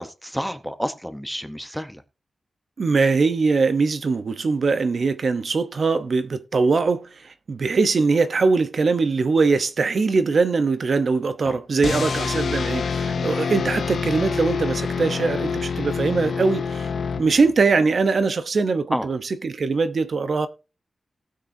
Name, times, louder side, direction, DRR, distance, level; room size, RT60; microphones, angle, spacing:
voice 1, 0.0-2.0 11.4-11.6 13.1-13.3 18.9-19.1, equal, ahead, 0.8 m, -30 dB
voice 2, 2.8-16.9 17.2-20.5, right 4 dB, 50° right, 0.7 m, -21 dB
sound 1, 11.8-17.7, left 5 dB, 70° left, 0.6 m, -26 dB
19.0 x 6.6 x 2.6 m
wide cardioid pair, 165°, 0 cm